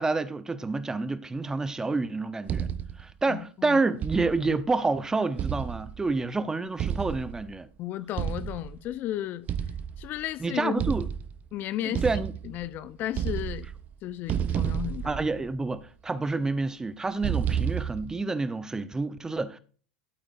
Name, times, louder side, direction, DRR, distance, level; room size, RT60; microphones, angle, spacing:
voice 1, 0.0-2.7 3.0-7.7 10.4-11.0 11.9-12.3 15.0-19.6, right 3 dB, 15° right, 0.9 m, -28 dB
sound 1, 2.5-3.1 4.0-4.6 5.4-6.2 6.8-7.6 8.2-8.8 9.5-10.3 10.8-11.5 11.9-12.8 13.1-13.9 14.3-15.8 17.2-18.2, right 8 dB, 35° right, 0.8 m, -31 dB
voice 2, 3.3-3.8 7.8-9.4 10.0-10.9 11.5-12.0 12.4-13.7 14.0-15.2, left 13 dB, 45° left, 0.8 m, -34 dB
12.0 x 9.1 x 2.7 m
hypercardioid pair, 90°, 4 cm